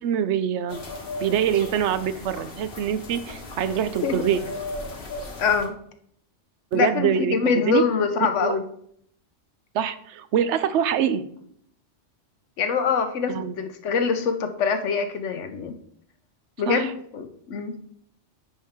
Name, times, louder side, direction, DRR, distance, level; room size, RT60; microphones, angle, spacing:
voice 1, 0.0-0.8 1.2-4.4 6.7-7.8 8.4-8.6 9.7-11.2 13.3-13.5 16.7-16.9, right 9 dB, 75° right, 12 dB, 0.9 m, -24 dB
sound 1, 0.7-5.7, left 2 dB, 55° left, 1.3 m, -36 dB
voice 2, 5.4-5.7 6.7-8.6 12.6-15.7 16.6-17.7, left 5 dB, 85° left, 8 dB, 1.1 m, -24 dB
9.5 x 4.5 x 3.6 m, 0.67 s
omnidirectional pair, 1.2 m